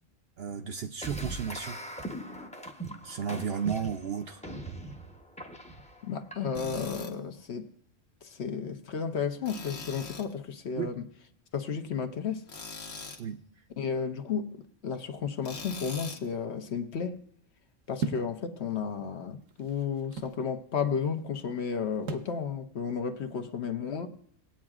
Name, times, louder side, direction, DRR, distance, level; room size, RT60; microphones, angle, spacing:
voice 1, 0.4-1.8 3.0-4.4 10.8-10.9 13.2-13.4, right 7 dB, 60° right, 0.7 m, -33 dB
sound 1, 1.0-6.8, right 1 dB, 5° left, 0.6 m, -41 dB
voice 2, 6.0-7.7 8.2-11.0 11.5-12.5 13.8-17.2 17.9-24.1, left 6 dB, 60° left, 1.1 m, -33 dB
Tools, 6.6-7.1 9.5-10.3 12.5-13.2 15.4-16.3, left 3 dB, 75° left, 1.5 m, -41 dB
sound 2, 18.0-18.4 19.2-20.4 22.1-22.4, right 3 dB, 80° right, 1.2 m, -35 dB
19.5 x 8.7 x 2.4 m
omnidirectional pair, 1.3 m